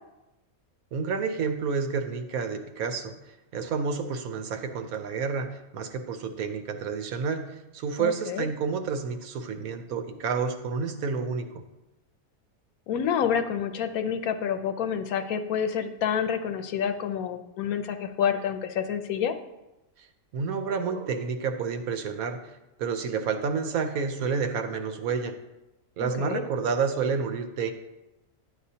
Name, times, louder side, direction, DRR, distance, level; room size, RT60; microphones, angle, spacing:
voice 1, 0.9-3.2 3.5-11.6 20.3-22.4 22.8-25.4 26.0-27.7, right 5 dB, 70° right, 7 dB, 1.2 m, -29 dB
voice 2, 8.0-8.5 12.9-19.3 26.0-26.4, left 8 dB, 75° left, 8 dB, 1.1 m, -28 dB
11.0 x 8.0 x 2.8 m, 0.98 s
omnidirectional pair, 1.6 m